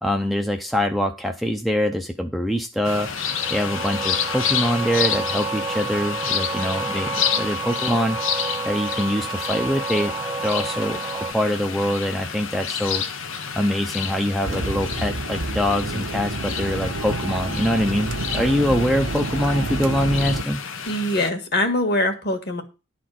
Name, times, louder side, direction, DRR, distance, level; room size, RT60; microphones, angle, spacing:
voice 1, 0.0-8.2 8.6-10.1 10.4-13.0 13.5-20.6, equal, ahead, 4 dB, 0.6 m, -24 dB
sound 1, 2.8-21.3, left 7 dB, 75° left, 1.0 m, -29 dB
sound 2, 3.2-11.3, right 5 dB, 20° right, 0.9 m, -30 dB
sound 3, 14.4-20.4, right 2 dB, 75° right, 1.2 m, -29 dB
voice 2, 20.9-22.6, left 1 dB, 50° left, 5 dB, 1.8 m, -23 dB
11.5 x 4.3 x 7.7 m, 0.31 s
head